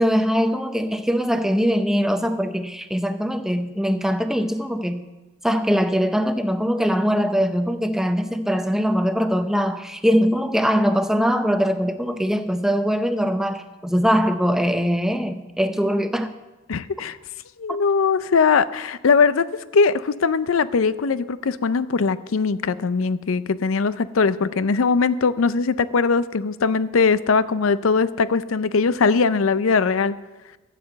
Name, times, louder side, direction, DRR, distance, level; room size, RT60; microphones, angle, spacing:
voice 1, 0.0-5.0 5.4-16.3, equal, ahead, 0.6 m, -22 dB
voice 2, 16.7-17.2 17.6-19.5 19.7-30.2, left 5 dB, 85° left, 0.5 m, -20 dB
13.5 x 7.4 x 7.8 m
head